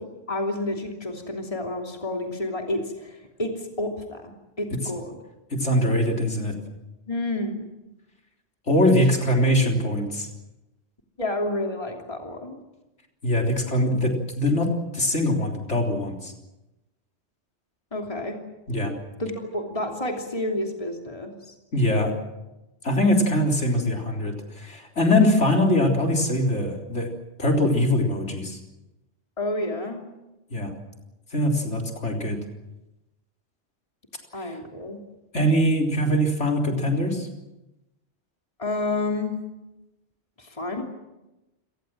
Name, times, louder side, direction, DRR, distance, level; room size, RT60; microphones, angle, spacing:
voice 1, 0.3-5.1 7.1-7.5 11.2-12.6 17.9-18.4 19.2-21.5 29.4-30.0 34.3-35.0 38.6-39.4 40.4-40.8, left 2 dB, 30° left, 2 dB, 3.1 m, -30 dB
voice 2, 5.5-6.5 8.7-10.3 13.2-16.3 18.7-18.9 21.7-22.1 22.8-27.1 27.4-28.6 30.5-30.7 31.3-32.4 34.4-34.6 35.3-37.3, left 1 dB, 75° left, 2 dB, 4.1 m, -22 dB
28.5 x 18.5 x 7.7 m, 0.99 s
omnidirectional pair, 1.2 m